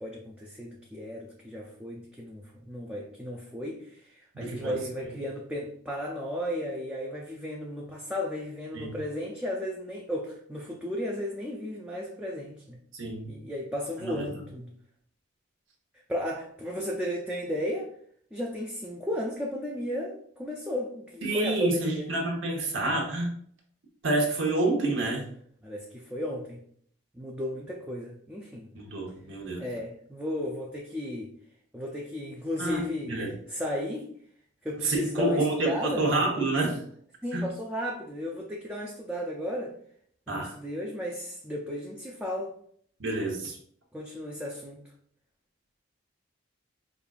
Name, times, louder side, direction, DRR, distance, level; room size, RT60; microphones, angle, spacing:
voice 1, 0.0-12.8 13.3-14.7 16.1-17.9 18.3-22.1 25.6-26.6 27.1-28.7 29.6-31.3 31.7-33.1 33.5-34.1 34.6-36.0 37.2-39.7 40.3-42.5 43.9-44.8, left 1 dB, 5° right, -2 dB, 0.4 m, -34 dB
voice 2, 4.3-4.8 5.0-5.2 8.7-9.0 12.9-13.3 14.0-14.3 21.2-23.3 24.0-25.3 28.7-29.7 32.6-33.3 34.8-36.8 37.3-37.5 40.3-40.5 43.0-43.6, right 2 dB, 70° right, 0 dB, 0.9 m, -28 dB
5.2 x 2.3 x 2.4 m, 0.62 s
head